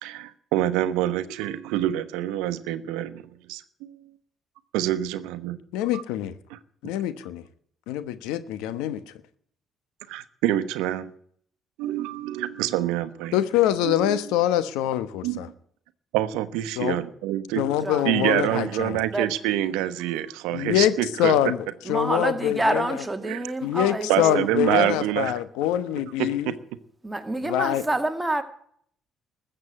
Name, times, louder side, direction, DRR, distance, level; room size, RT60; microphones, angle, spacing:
voice 1, 0.0-4.0 4.7-5.6 5.9-6.0 6.5-6.6 10.1-11.1 11.8-13.4 13.8-14.2 15.2-15.4 16.1-17.6 18.0-21.4 23.2-23.4 24.1-25.3 26.2-26.5, right 13 dB, 90° right, 0.9 m, -26 dB
voice 2, 5.7-6.3 6.8-7.4 7.9-9.0 13.3-15.5 16.8-17.0 17.6-19.0 20.5-22.8 23.6-26.6 27.4-27.8, left 12 dB, 90° left, 1.0 m, -24 dB
voice 3, 21.8-25.1 27.0-28.4, right 2 dB, 15° right, 2.0 m, -28 dB
14.0 x 8.0 x 9.9 m
supercardioid pair, 85°, 0 cm